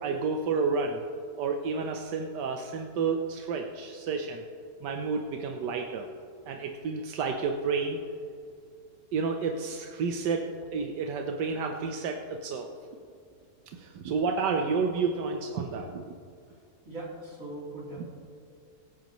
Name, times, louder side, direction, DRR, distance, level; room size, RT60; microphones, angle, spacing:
voice 1, 0.0-1.0 1.4-4.4 4.8-6.1 6.5-8.0 9.1-12.7 13.7-16.0, right 5 dB, 85° right, 3 dB, 1.4 m, -30 dB
voice 2, 16.8-18.1, right 2 dB, 50° right, -6 dB, 3.8 m, -40 dB
22.0 x 9.7 x 3.1 m, 2.3 s
omnidirectional pair, 1.8 m